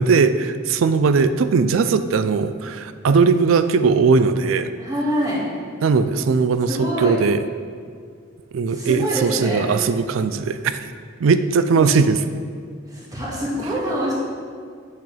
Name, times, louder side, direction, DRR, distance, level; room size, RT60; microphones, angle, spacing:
voice 1, 0.0-4.7 5.8-7.4 8.5-10.8 11.2-12.2, right 5 dB, 70° right, 11 dB, 0.4 m, -19 dB
voice 2, 4.8-5.4 6.7-7.2 8.7-9.7 11.8-11.9 12.9-14.1, equal, 20° right, -6 dB, 1.9 m, -25 dB
8.3 x 6.8 x 3.3 m, 2.1 s
head